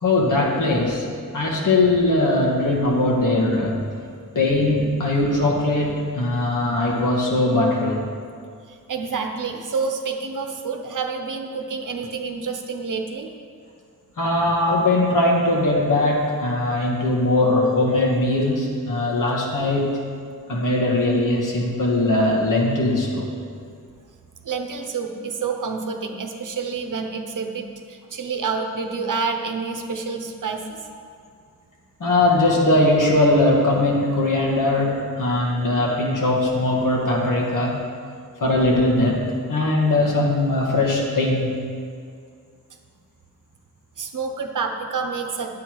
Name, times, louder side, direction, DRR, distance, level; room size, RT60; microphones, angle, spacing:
voice 1, 0.0-1.1 1.3-3.8 4.4-8.0 14.2-20.0 20.5-23.3 32.0-37.8 38.4-41.6, left 2 dB, 60° left, -2 dB, 1.8 m, -20 dB
voice 2, 8.7-13.3 24.4-30.8 44.0-45.5, right 5 dB, 60° right, 4 dB, 1.0 m, -28 dB
10.0 x 8.5 x 4.7 m, 2.3 s
wide cardioid pair, 180°, 35 cm